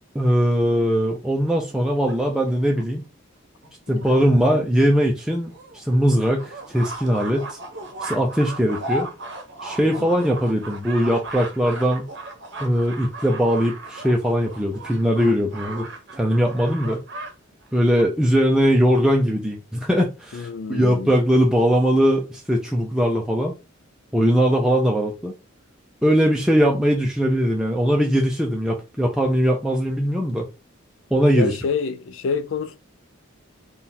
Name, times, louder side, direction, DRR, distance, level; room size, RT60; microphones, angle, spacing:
voice 1, 0.1-3.0 3.9-7.6 8.0-9.1 9.6-12.1 12.6-15.8 16.1-17.0 17.7-23.5 24.1-25.3 26.0-30.5 31.1-31.5, equal, 5° right, 0.4 m, -20 dB
sound 1, 1.2-2.8 3.6-3.7 4.0-4.1 4.4-4.5 4.8-4.9 5.5-17.3 17.6-18.0, right 2 dB, 60° right, 0.8 m, -36 dB
voice 2, 3.9-4.3 9.8-10.1 20.3-21.1 31.3-32.8, left 4 dB, 70° left, 0.4 m, -28 dB
3.7 x 2.3 x 4.2 m
head